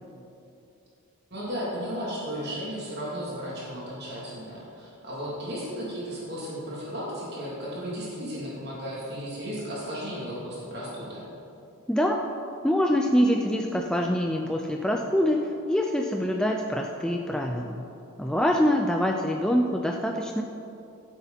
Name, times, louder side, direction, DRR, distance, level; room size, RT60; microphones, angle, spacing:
voice 1, 1.3-11.2, equal, 50° right, -6 dB, 2.5 m, -34 dB
voice 2, 11.9-12.3 12.6-17.9 18.2-20.4, equal, 5° left, 2 dB, 0.4 m, -25 dB
14.0 x 8.2 x 4.0 m, 2.7 s
head